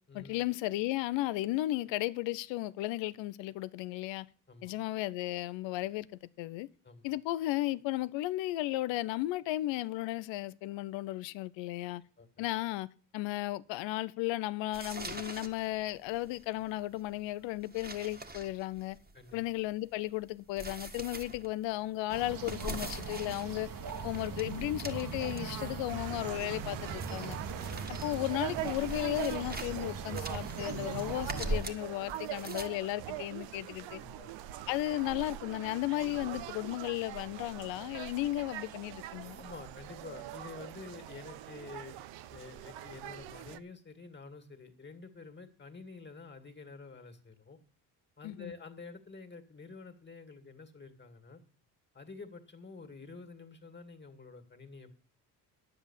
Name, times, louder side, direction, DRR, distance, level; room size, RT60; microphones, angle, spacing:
voice 1, 0.1-4.3 4.6-6.7 7.0-12.0 12.4-12.9 13.1-19.0 19.3-23.7 24.0-27.4 27.9-34.0 34.7-39.4 48.2-48.5, left 16 dB, 75° left, 0.7 m, -35 dB
sound 1, 14.7-32.7, right 2 dB, 20° right, 1.7 m, -43 dB
sound 2, 22.1-31.6, right 5 dB, 45° right, 1.5 m, -40 dB
sound 3, 25.9-43.6, right 13 dB, 70° right, 0.8 m, -43 dB
voice 2, 33.8-34.3 39.4-42.0 42.3-47.6 48.2-51.4 51.9-55.0, left 4 dB, 25° left, 2.2 m, -49 dB
9.9 x 8.0 x 7.3 m
supercardioid pair, 70°, 45 cm